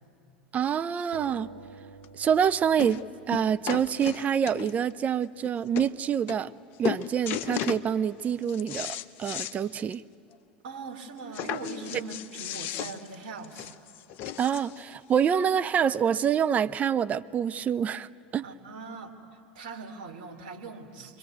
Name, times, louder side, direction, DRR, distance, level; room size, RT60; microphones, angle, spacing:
voice 1, 0.5-1.5 2.2-6.5 6.8-10.0 14.4-18.1 18.3-18.4, right 8 dB, 30° right, 14 dB, 0.6 m, -26 dB
sound 1, 1.1-4.3, right 4 dB, 90° right, 1.6 m, -49 dB
sound 2, 2.0-2.1 2.8-3.0 3.3-4.9 5.4-5.5 5.7-5.9 6.3-6.6 6.8-7.8 8.3-9.6 9.9-10.0 10.3-10.4 11.3-14.8 15.6-15.7, left 11 dB, 45° left, 0.8 m, -35 dB
voice 2, 10.6-13.7 18.4-19.2 19.5-21.2, right 4 dB, 60° right, 1 dB, 2.8 m, -40 dB
26.5 x 22.5 x 9.3 m, 2.6 s
figure-of-eight pair, 85°, 5 cm